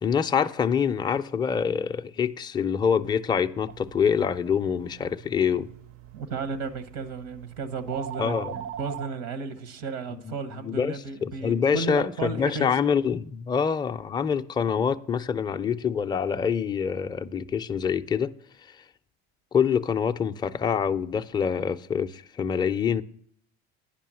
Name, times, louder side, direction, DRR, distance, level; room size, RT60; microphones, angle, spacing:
voice 1, 0.0-5.7 8.2-8.5 10.1-18.3 19.5-23.0, left 7 dB, 15° left, 0.4 m, -26 dB
sound 1, 3.7-9.1, right 10 dB, 45° right, 0.5 m, -41 dB
voice 2, 6.1-12.8, right 4 dB, 85° right, 1.2 m, -34 dB
10.0 x 5.4 x 7.5 m
supercardioid pair, 120°, 31 cm